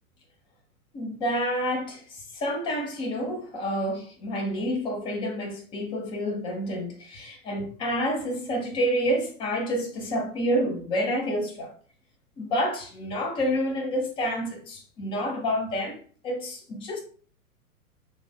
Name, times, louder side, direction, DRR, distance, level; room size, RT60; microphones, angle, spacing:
voice 1, 0.9-11.7 12.4-17.0, equal, 10° left, 0.4 m, -28 dB
3.3 x 2.1 x 3.2 m
figure-of-eight pair, 110°, 43 cm